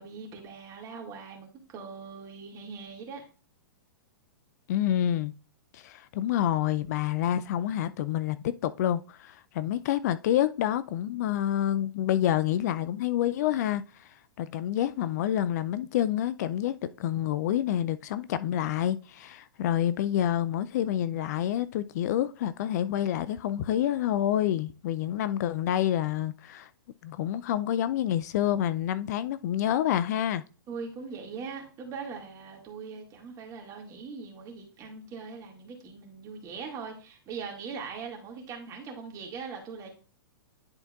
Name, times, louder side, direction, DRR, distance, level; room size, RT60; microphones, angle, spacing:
voice 1, 0.0-3.2 30.7-39.9, right 5 dB, 30° right, 2.1 m, -41 dB
voice 2, 4.7-5.3 5.7-14.1 14.4-26.7 27.0-30.4, left 11 dB, 50° left, 0.4 m, -28 dB
10.5 x 4.4 x 2.4 m
figure-of-eight pair, 110°, 11 cm